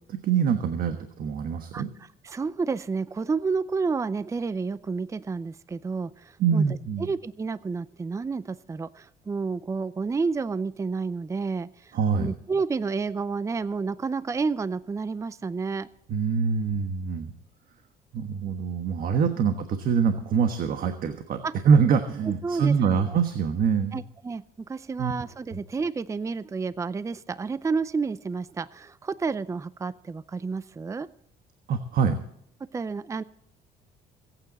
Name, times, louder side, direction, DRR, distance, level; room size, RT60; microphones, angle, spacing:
voice 1, 0.1-1.9 6.4-7.1 11.9-12.3 16.1-17.3 18.1-24.0 25.0-25.1 31.7-32.2, right 6 dB, 60° right, 7 dB, 1.3 m, -24 dB
voice 2, 2.2-6.6 7.0-15.9 21.4-21.5 22.4-23.2 23.9-31.1 32.7-33.2, right 4 dB, 20° right, 16 dB, 0.5 m, -30 dB
23.0 x 9.1 x 4.2 m, 0.69 s
cardioid pair, 110°, 17 cm